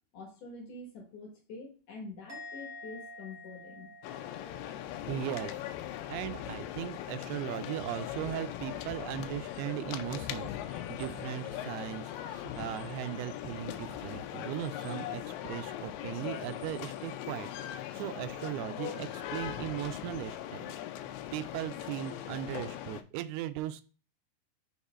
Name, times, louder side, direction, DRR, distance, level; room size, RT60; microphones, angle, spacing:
voice 1, 0.1-3.9, left 3 dB, 60° left, 0 dB, 2.7 m, -46 dB
Musical instrument, 2.3-5.7 5.9-6.4, left 2 dB, 50° right, 0.9 m, -49 dB
sound 1, 4.0-23.0, left 12 dB, 90° left, 2.6 m, -40 dB
voice 2, 5.1-5.6 6.1-20.7 21.3-23.8, right 13 dB, 90° right, 12 dB, 2.6 m, -38 dB
6.2 x 3.6 x 4.2 m, 0.36 s
omnidirectional pair, 4.5 m